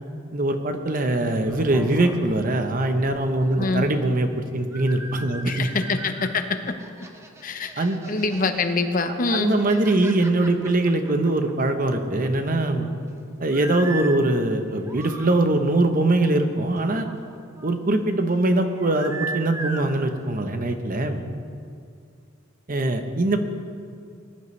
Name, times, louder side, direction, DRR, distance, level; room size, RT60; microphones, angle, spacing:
voice 1, 0.3-5.7 7.8-8.0 9.3-12.9 13.4-17.1 17.6-21.2 22.7-23.4, right 2 dB, 45° right, 6 dB, 0.9 m, -22 dB
sound 1, 1.2-4.3 4.7-6.3 6.7-8.7 9.1-11.9 12.2-13.0 13.5-14.2 14.7-15.4 16.8-17.8 18.7-19.9, right 2 dB, 15° right, 0.9 m, -38 dB
voice 2, 3.6-3.9 5.4-6.7 7.4-9.6, left 3 dB, 45° left, 8 dB, 0.8 m, -25 dB
20.0 x 11.0 x 3.3 m, 2.4 s
head